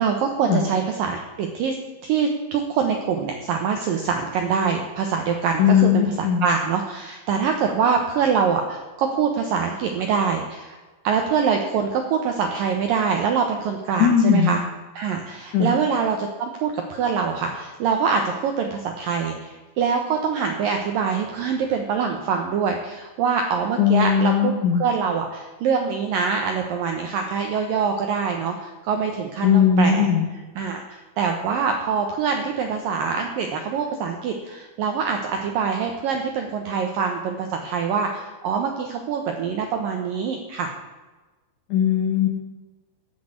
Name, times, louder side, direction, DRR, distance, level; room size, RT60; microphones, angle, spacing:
voice 1, 0.0-1.8 2.0-10.8 11.0-14.6 14.9-24.5 24.8-30.1 30.6-40.7, right 6 dB, 75° right, 4 dB, 2.1 m, -24 dB
voice 2, 5.6-6.5 14.0-14.5 15.5-15.7 23.8-24.8 29.4-30.3 41.7-42.3, left 8 dB, 60° left, 0 dB, 2.2 m, -18 dB
14.0 x 6.3 x 8.6 m, 1.2 s
omnidirectional pair, 5.3 m